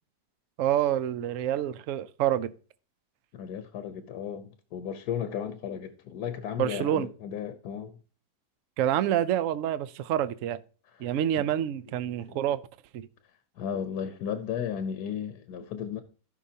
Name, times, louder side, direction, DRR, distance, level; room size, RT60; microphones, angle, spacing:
voice 1, 0.6-2.5 6.6-7.1 8.8-10.6 11.0-12.6 12.9-13.1, right 11 dB, 70° right, 0.8 m, -27 dB
voice 2, 3.3-8.0 10.9-11.7 12.3-12.4 13.6-16.0, left 8 dB, 70° left, 1.3 m, -35 dB
16.0 x 5.6 x 2.8 m
omnidirectional pair, 1.8 m